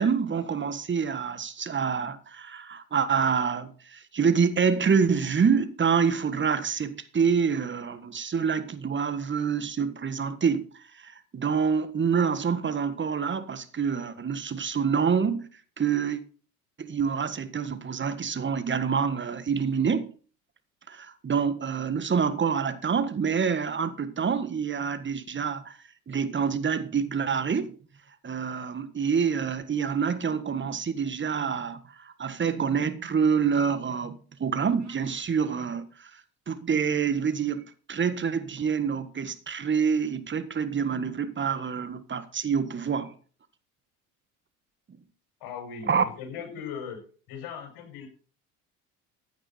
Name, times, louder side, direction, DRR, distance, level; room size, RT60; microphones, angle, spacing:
voice 1, 0.0-10.7 11.0-15.5 15.8-16.2 16.8-20.1 20.9-25.8 26.1-27.7 28.2-36.1 36.5-43.1 45.9-46.0, right 6 dB, 25° right, 1.6 m, -27 dB
sound 1, 34.7-35.2, right 4 dB, 40° right, 6.9 m, -55 dB
voice 2, 45.4-47.0 47.3-48.1, left 7 dB, 55° left, 6.4 m, -38 dB
15.5 x 9.6 x 4.4 m
hypercardioid pair, 65°, 44 cm